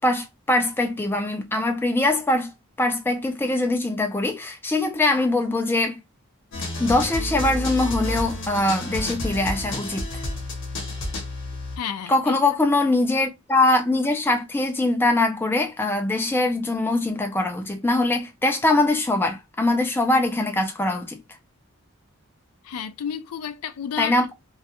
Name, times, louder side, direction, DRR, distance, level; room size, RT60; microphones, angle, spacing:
voice 1, 0.0-2.5 2.8-6.0 6.8-10.1 12.1-21.2 24.0-24.3, left 2 dB, 10° left, 0.3 m, -22 dB
sound 1, 6.5-11.8, left 1 dB, 55° left, 0.8 m, -30 dB
voice 2, 11.8-12.4 22.6-24.2, left 8 dB, 85° left, 0.4 m, -31 dB
2.3 x 2.1 x 2.8 m
head